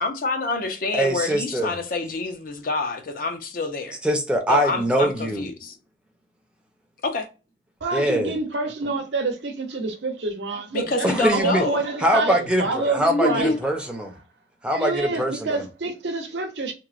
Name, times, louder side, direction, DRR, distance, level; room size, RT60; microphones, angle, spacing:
voice 1, 0.0-4.0 4.5-5.8 7.0-7.3 10.7-11.8 13.1-13.6, left 3 dB, 50° left, 0.5 m, -27 dB
voice 2, 0.9-1.7 4.0-5.4 7.9-8.3 11.0-11.6 12.0-14.1 14.6-15.6, right 1 dB, 5° right, 0.5 m, -23 dB
voice 3, 7.8-13.5 14.7-16.7, right 3 dB, 80° right, 0.7 m, -27 dB
3.0 x 2.1 x 2.4 m
head